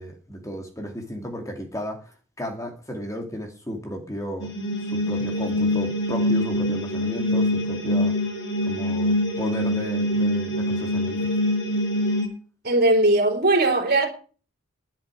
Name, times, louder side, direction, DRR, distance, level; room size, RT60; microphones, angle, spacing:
voice 1, 0.0-4.5 4.9-8.1 8.7-11.3, equal, 15° left, 2.3 m, -34 dB
sound 1, 4.4-12.3, left 1 dB, 55° left, 4.4 m, -24 dB
voice 2, 12.6-14.1, right 2 dB, 50° right, 3.9 m, -19 dB
11.5 x 9.3 x 6.3 m
head